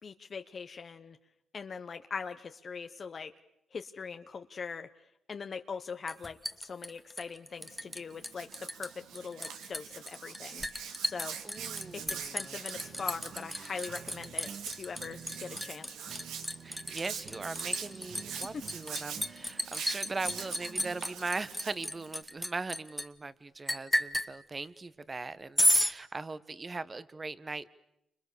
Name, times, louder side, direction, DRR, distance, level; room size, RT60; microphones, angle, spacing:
voice 1, 0.0-1.2 1.5-3.3 3.7-4.9 5.3-10.7 11.0-11.4 11.9-14.5 14.8-15.9 18.5-18.6, left 5 dB, 40° left, 7 dB, 1.0 m, -41 dB
Liquid, 6.1-8.0 8.2-8.9 9.1-23.1 23.7-24.3 25.6-25.9, equal, 5° left, 1.4 m, -32 dB
Hands, 7.6-22.2, right 7 dB, 85° right, 2.5 m, -45 dB
voice 2, 11.4-12.6 16.6-27.7, right 3 dB, 25° right, 15 dB, 1.2 m, -40 dB
sound 1, 11.5-21.1, right 6 dB, 55° right, 2.2 m, -51 dB
29.5 x 26.0 x 6.9 m, 0.81 s
cardioid pair, 90°, 0 cm